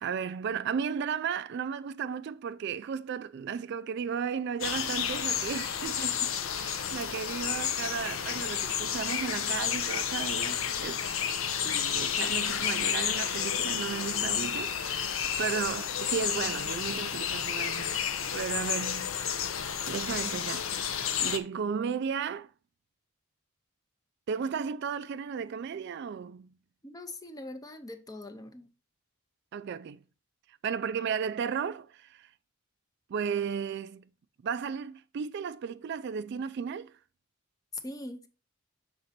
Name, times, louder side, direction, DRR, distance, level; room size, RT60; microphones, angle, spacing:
voice 1, 0.0-11.0 11.6-18.0 18.3-19.2 19.9-20.8 21.2-22.5 24.3-26.5 29.5-30.0 30.6-32.3 33.1-34.1 34.4-36.9, right 7 dB, 55° right, 0.3 m, -34 dB
sound 1, 4.6-21.4, left 8 dB, 70° left, 0.7 m, -31 dB
voice 2, 26.8-28.7 37.8-38.3, left 1 dB, 15° left, 0.6 m, -42 dB
6.6 x 4.0 x 4.2 m
head